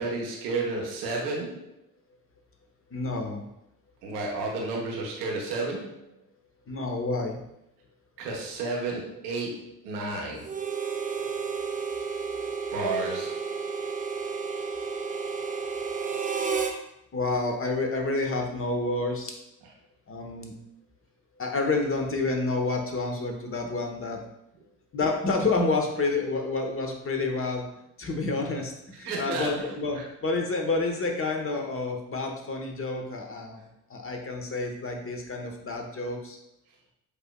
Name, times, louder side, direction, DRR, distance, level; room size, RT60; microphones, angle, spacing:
voice 1, 0.0-1.7 4.0-6.1 8.2-10.5 12.7-13.6 29.0-30.1, right 3 dB, 85° right, -2 dB, 1.0 m, -32 dB
voice 2, 2.9-3.5 6.7-7.4 17.1-19.3 20.1-20.5 21.4-24.2 24.9-27.6 28.0-33.6 33.9-36.4, left 3 dB, 30° left, 3 dB, 1.1 m, -29 dB
Harmonica, 10.4-16.8, right 5 dB, 20° right, 0.6 m, -31 dB
7.9 x 2.9 x 2.2 m, 0.81 s
hypercardioid pair, 50°, 45 cm